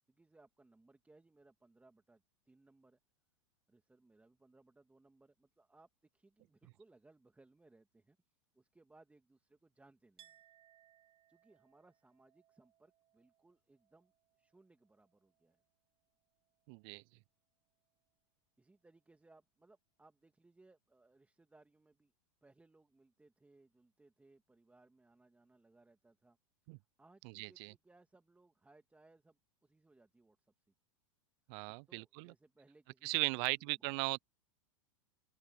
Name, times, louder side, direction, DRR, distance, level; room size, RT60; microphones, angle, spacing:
voice 1, 0.1-3.0 3.7-8.2 8.5-10.4 11.3-14.1 14.4-15.6 18.6-22.1 22.4-26.4 27.0-30.5 31.7-33.8, right 2 dB, 10° right, 2.2 m, -66 dB
Chink clink, 10.2-15.7 16.0-16.9, right 11 dB, 35° right, 7.5 m, -69 dB
voice 2, 16.7-17.0 26.7-26.8 27.4-27.7 31.5-32.3 33.0-34.2, right 32 dB, 50° right, 0.5 m, -37 dB
open air
hypercardioid pair, 105°, 17 cm